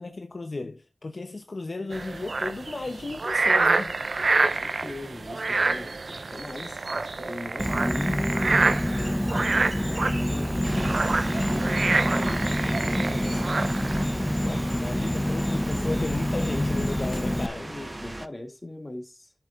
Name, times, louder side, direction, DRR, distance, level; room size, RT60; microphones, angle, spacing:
voice 1, 0.0-4.0 14.4-17.7, left 3 dB, 75° left, 0.9 m, -34 dB
sound 1, 1.9-14.0, right 3 dB, 80° right, 0.5 m, -27 dB
voice 2, 4.4-9.7 10.0-13.7 15.4-15.9 17.2-19.3, left 1 dB, 35° left, 2.3 m, -40 dB
Insect, 7.6-17.5, left 1 dB, 15° left, 0.8 m, -27 dB
snow blower close follow and leave Montreal Canada, 10.6-18.3, right 1 dB, 35° right, 0.7 m, -36 dB
11.5 x 6.9 x 2.6 m
wide cardioid pair, 45°, 0 cm